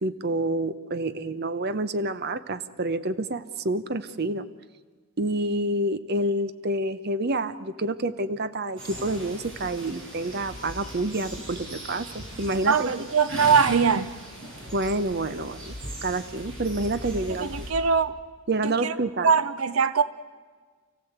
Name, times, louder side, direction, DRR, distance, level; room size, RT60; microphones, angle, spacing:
voice 1, 0.0-4.5 5.2-12.9 14.7-15.7 16.0-17.6 18.5-19.3, right 2 dB, 50° right, 13 dB, 0.9 m, -28 dB
sound 1, 8.8-17.7, right 1 dB, 65° right, 6.9 m, -39 dB
voice 2, 12.7-14.1 17.3-18.2 18.6-19.0 19.2-20.0, right 6 dB, 85° right, 14 dB, 0.7 m, -22 dB
29.0 x 16.0 x 8.1 m, 1.5 s
head